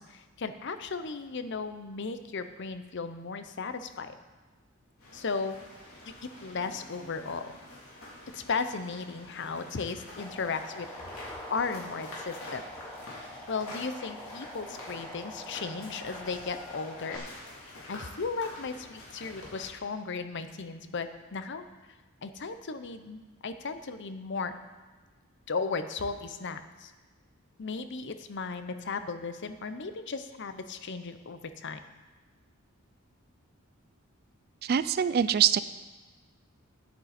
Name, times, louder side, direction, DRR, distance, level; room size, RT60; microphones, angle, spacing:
voice 1, 0.0-4.2 5.1-5.6 6.1-7.5 8.3-10.9 11.2-12.6 13.5-17.2 17.9-21.6 22.2-24.5 25.5-26.9 27.6-31.8, left 4 dB, 55° left, 10 dB, 0.7 m, -36 dB
sound 1, 5.0-19.7, left 1 dB, 80° left, 3.3 m, -47 dB
sound 2, 10.2-17.2, left 1 dB, 10° left, 1.1 m, -45 dB
voice 2, 34.6-35.6, right 9 dB, 50° right, 15 dB, 0.3 m, -24 dB
10.5 x 9.1 x 4.3 m, 1.3 s
head